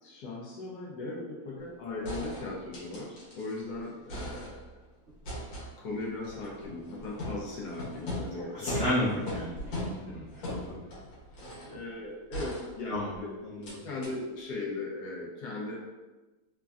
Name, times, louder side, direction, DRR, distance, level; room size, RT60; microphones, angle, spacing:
voice 1, 0.0-4.6 5.5-8.9 11.7-15.8, left 2 dB, 70° left, -4 dB, 1.1 m, -38 dB
sound 1, 1.6-1.7 2.0-3.6 3.9-4.8 5.2-11.8 12.3-13.2 13.6-13.7 14.0-14.1, left 1 dB, 90° left, 1.6 m, -39 dB
voice 2, 8.6-10.8 11.7-11.8 12.9-13.1 13.6-13.7, left 1 dB, 65° right, -9 dB, 0.6 m, -32 dB
3.5 x 2.1 x 2.3 m, 1.1 s
omnidirectional pair, 2.0 m